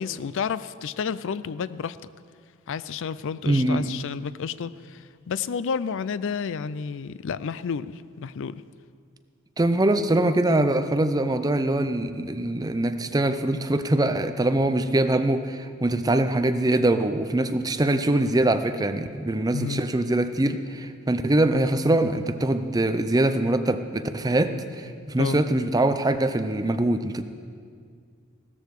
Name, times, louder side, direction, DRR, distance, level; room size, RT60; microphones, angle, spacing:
voice 1, 0.0-2.0 2.7-8.6 19.5-19.8 25.2-25.4, left 6 dB, 60° left, 16 dB, 0.4 m, -31 dB
voice 2, 3.5-3.9 9.6-27.2, right 1 dB, 15° right, 9 dB, 0.5 m, -23 dB
15.5 x 13.5 x 4.8 m, 2.1 s
head